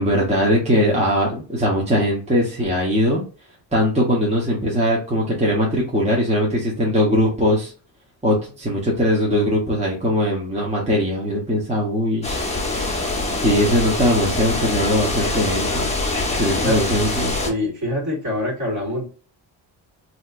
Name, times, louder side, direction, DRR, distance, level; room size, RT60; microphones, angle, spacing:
voice 1, 0.0-3.2 3.7-7.7 8.2-15.9 16.4-17.3, equal, 15° right, -4 dB, 0.9 m, -20 dB
sound 1, 12.2-17.5, left 2 dB, 15° left, 0.9 m, -24 dB
voice 2, 17.5-19.0, left 1 dB, 40° right, -2 dB, 1.7 m, -24 dB
3.3 x 2.8 x 2.4 m, 0.36 s
cardioid pair, 90°, 46 cm